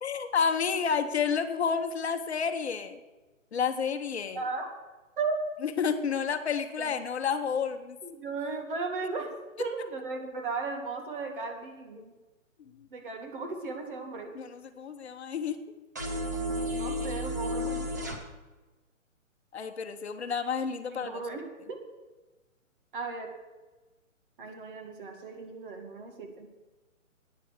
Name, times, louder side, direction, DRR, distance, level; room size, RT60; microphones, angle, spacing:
voice 1, 0.0-3.0 3.5-4.4 5.8-8.0 12.7-12.9 14.3-15.6 19.5-21.2, left 6 dB, 55° left, 8 dB, 1.1 m, -30 dB
voice 2, 4.4-4.7 5.2-5.4 6.8-6.9 8.0-9.3 9.6-12.1 12.9-14.3 16.8-17.8 20.9-21.4 21.7-21.8 22.9-23.3 24.4-26.5, right 4 dB, 40° right, 4 dB, 2.2 m, -36 dB
sound 1, 16.0-18.2, equal, 15° right, 0.6 m, -32 dB
11.5 x 9.3 x 6.5 m, 1.2 s
hypercardioid pair, 160°, 40 cm